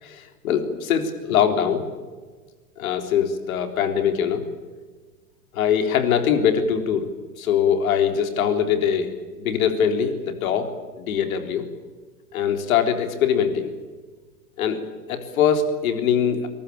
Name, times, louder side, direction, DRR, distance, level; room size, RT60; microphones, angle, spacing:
voice 1, 0.0-1.9 2.8-4.5 5.5-11.7 12.3-13.7 14.6-14.8 15.1-16.5, left 8 dB, 60° left, 6 dB, 4.0 m, -22 dB
23.0 x 21.0 x 8.8 m, 1.4 s
hypercardioid pair, 110°, 46 cm